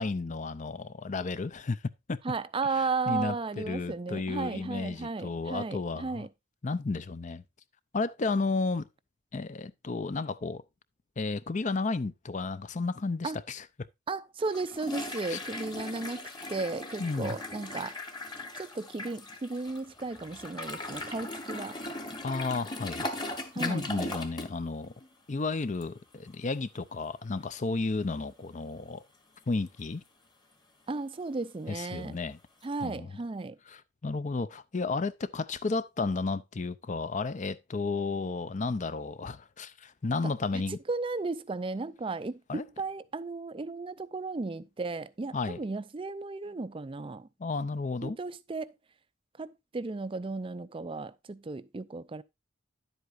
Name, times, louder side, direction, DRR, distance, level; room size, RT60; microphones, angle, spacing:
voice 1, 0.0-1.8 2.1-2.2 3.1-6.3 6.6-7.4 7.9-8.9 9.3-10.6 11.2-13.9 15.3-15.4 17.0-17.4 22.2-23.1 23.5-24.9 25.3-29.0 29.5-30.0 31.7-32.4 32.8-33.1 33.7-40.8 42.5-42.6 45.3-45.6 47.4-48.2, left 3 dB, 40° left, 0.5 m, -32 dB
voice 2, 2.2-6.3 13.2-13.4 14.1-17.9 18.6-21.8 23.5-24.2 30.9-32.2 32.6-33.6 40.5-40.6 40.9-47.3 48.0-48.7 49.4-52.2, right 3 dB, 25° right, 0.4 m, -35 dB
sound 1, 14.4-24.6 24.8-25.1 25.8-25.9 26.3-26.4 32.6-32.7, left 2 dB, 20° left, 1.4 m, -39 dB
10.5 x 8.1 x 2.5 m
head